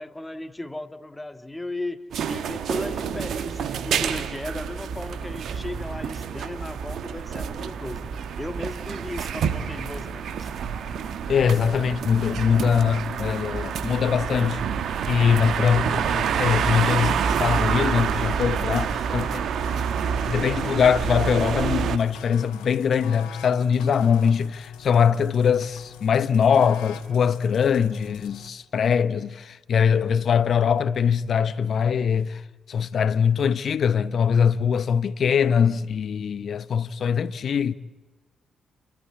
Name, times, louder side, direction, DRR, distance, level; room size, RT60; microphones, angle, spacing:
voice 1, 0.0-8.1 8.4-10.5, left 1 dB, 15° left, 1.7 m, -36 dB
sound 1, 2.1-22.0, right 7 dB, 70° right, 1.2 m, -28 dB
voice 2, 11.3-14.6 15.1-19.5 20.3-32.4 32.7-37.7, left 7 dB, 60° left, 0.8 m, -22 dB
sound 2, 19.6-28.5, left 8 dB, 85° left, 1.4 m, -43 dB
29.0 x 13.0 x 9.6 m
hypercardioid pair, 45°, 0 cm